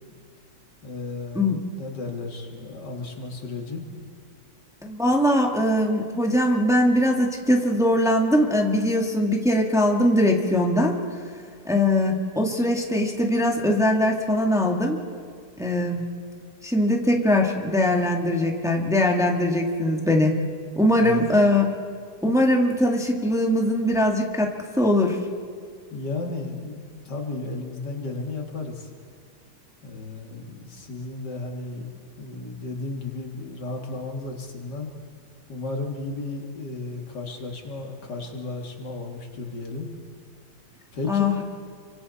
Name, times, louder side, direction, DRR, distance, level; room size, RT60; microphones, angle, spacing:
voice 1, 0.8-3.9 21.0-21.2 25.9-28.9 29.8-31.9 32.2-34.9 35.5-39.9 40.9-41.3, left 3 dB, 80° left, 2 dB, 2.8 m, -34 dB
voice 2, 4.8-11.0 11.7-15.0 15.6-16.0 16.6-20.4 20.8-21.7 22.2-25.2 41.1-41.4, left 1 dB, ahead, 0 dB, 1.8 m, -21 dB
29.5 x 24.5 x 4.2 m, 2.1 s
omnidirectional pair, 1.8 m